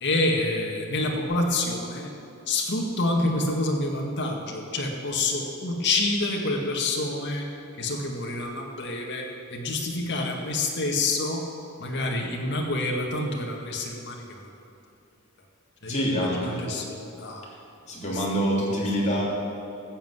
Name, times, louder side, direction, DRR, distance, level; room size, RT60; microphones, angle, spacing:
voice 1, 0.0-2.1 2.5-7.5 7.8-11.5 11.8-14.5 15.8-17.5 18.1-18.6, left 2 dB, 55° left, 0 dB, 1.9 m, -28 dB
voice 2, 15.9-16.6 17.9-19.2, equal, 30° left, -4 dB, 3.1 m, -26 dB
14.0 x 7.6 x 8.2 m, 2.6 s
head